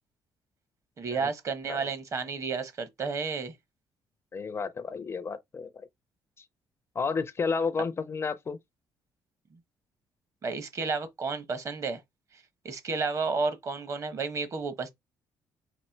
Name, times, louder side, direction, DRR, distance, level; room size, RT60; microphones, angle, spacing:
voice 1, 1.0-3.5 10.4-12.0 12.3-14.9, right 4 dB, 35° right, 0.9 m, -32 dB
voice 2, 4.3-5.9 6.4-6.5 7.0-8.6, left 5 dB, 30° left, 0.5 m, -32 dB
4.2 x 2.5 x 4.4 m
cardioid pair, 130°, 8 cm